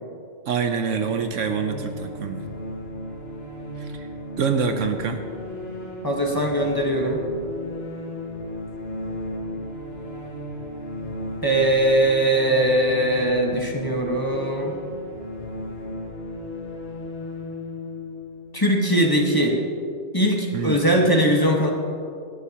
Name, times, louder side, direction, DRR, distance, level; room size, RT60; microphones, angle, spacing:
voice 1, 0.5-2.4 3.8-4.1 4.4-5.2 20.5-20.8, right 6 dB, 65° right, 7 dB, 1.0 m, -25 dB
sound 1, 0.9-19.5, left 1 dB, 45° left, 2.6 m, -35 dB
voice 2, 6.0-7.2 11.4-14.8 18.5-19.6 20.1-21.7, right 1 dB, 15° left, -1 dB, 1.3 m, -20 dB
18.0 x 13.0 x 2.9 m, 2.5 s
omnidirectional pair, 1.4 m